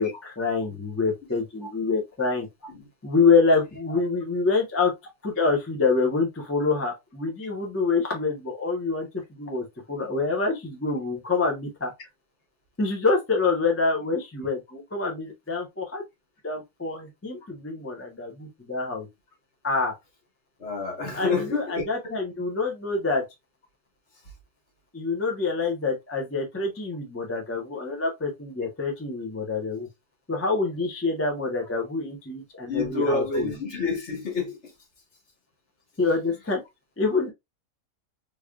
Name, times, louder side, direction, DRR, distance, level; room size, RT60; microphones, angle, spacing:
voice 1, 0.0-2.5 3.0-4.9 5.2-11.9 12.8-16.0 16.4-19.1 19.6-19.9 21.1-23.2 24.9-29.9 30.3-33.5 36.0-36.6 37.0-37.3, left 4 dB, 15° left, 0.5 m, -26 dB
voice 2, 20.6-21.8 32.7-34.7, left 4 dB, 45° left, 1.5 m, -28 dB
3.5 x 3.3 x 2.3 m
omnidirectional pair, 1.7 m